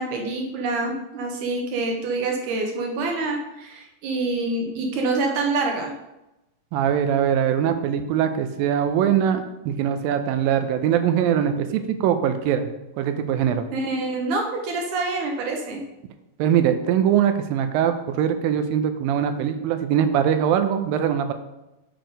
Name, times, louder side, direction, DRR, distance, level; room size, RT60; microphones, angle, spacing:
voice 1, 0.0-5.9 13.7-15.8, right 3 dB, 70° right, 2 dB, 2.2 m, -26 dB
voice 2, 6.7-12.7 13.0-13.7 16.4-21.3, right 9 dB, 85° right, 8 dB, 2.4 m, -22 dB
6.7 x 6.1 x 5.1 m, 0.96 s
omnidirectional pair, 4.1 m